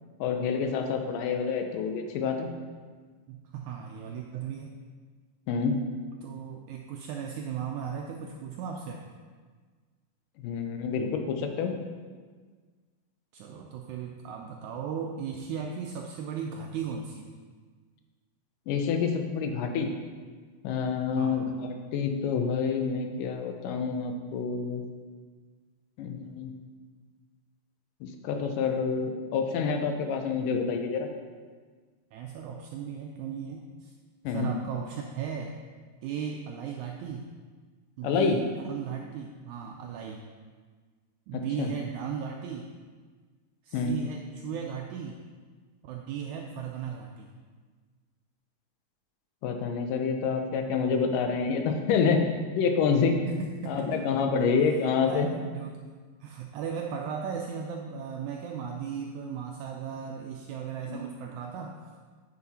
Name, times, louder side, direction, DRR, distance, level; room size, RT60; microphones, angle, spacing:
voice 1, 0.2-2.5 5.5-5.8 10.4-11.7 18.7-19.9 20.6-24.8 26.0-26.5 28.0-31.1 34.2-34.5 38.0-38.4 41.3-41.7 43.7-44.0 49.4-53.2 53.7-55.3 60.9-61.0, left 5 dB, 80° left, 5 dB, 2.4 m, -28 dB
voice 2, 3.3-4.7 6.2-9.0 13.3-17.3 21.1-21.5 32.1-33.9 34.3-35.6 36.0-37.3 38.0-40.3 41.3-42.7 43.6-45.2 45.8-47.3 53.3-54.1 54.6-54.7 55.1-55.9 56.2-61.8, right 7 dB, 85° right, 1 dB, 1.7 m, -36 dB
9.3 x 5.9 x 4.2 m, 1.5 s
omnidirectional pair, 3.8 m